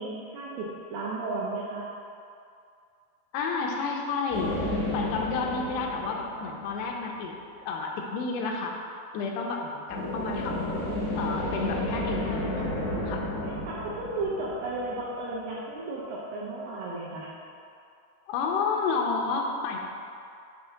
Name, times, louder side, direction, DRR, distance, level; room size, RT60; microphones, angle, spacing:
voice 1, 0.0-1.9 11.1-11.4 13.4-17.3, right 2 dB, 80° right, -5 dB, 2.1 m, -34 dB
voice 2, 3.3-4.6 4.9-7.3 7.7-8.8 9.1-10.9 11.1-13.3 18.3-19.8, left 4 dB, 85° left, 1 dB, 2.7 m, -31 dB
sound 1, 4.3-7.1 9.9-15.3, left 1 dB, 70° left, 3.4 m, -32 dB
6.7 x 2.7 x 5.7 m, 2.4 s
omnidirectional pair, 4.7 m